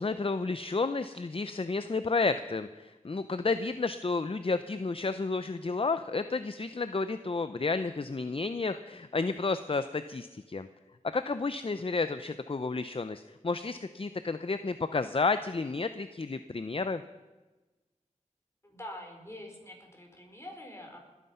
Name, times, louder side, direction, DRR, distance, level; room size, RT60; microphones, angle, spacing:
voice 1, 0.0-10.7 11.0-17.0, left 3 dB, 45° left, 12 dB, 0.6 m, -31 dB
voice 2, 18.6-21.0, left 1 dB, 20° left, 1 dB, 4.3 m, -45 dB
20.5 x 9.4 x 5.6 m, 1.2 s
wide cardioid pair, 45°, 13 cm